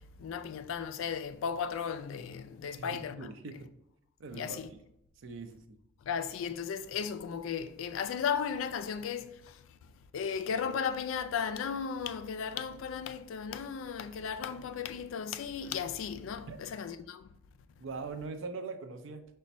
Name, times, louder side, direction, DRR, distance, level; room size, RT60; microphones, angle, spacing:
voice 1, 0.2-3.3 4.3-4.7 6.1-9.6 10.1-17.3, left 7 dB, 70° left, 0.3 m, -35 dB
voice 2, 2.8-3.7 4.2-4.6 5.2-5.6 16.5-16.6 17.8-19.3, right 4 dB, 65° right, 0.5 m, -41 dB
5.1 x 2.2 x 4.1 m
head